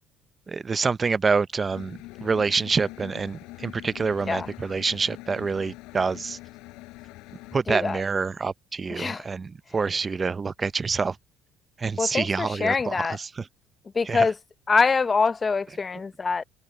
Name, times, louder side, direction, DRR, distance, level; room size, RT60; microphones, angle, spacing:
voice 1, 0.5-6.4 7.5-11.2 11.8-13.4 14.1-14.3, right 4 dB, 30° right, 0.6 m, -27 dB
Engine, 1.7-7.6, left 20 dB, 80° left, 6.3 m, -44 dB
voice 2, 7.7-8.0 8.9-9.3 12.0-13.2 13.9-14.3 14.7-16.4, left 4 dB, 30° left, 0.9 m, -24 dB
supercardioid pair, 75°, 0 cm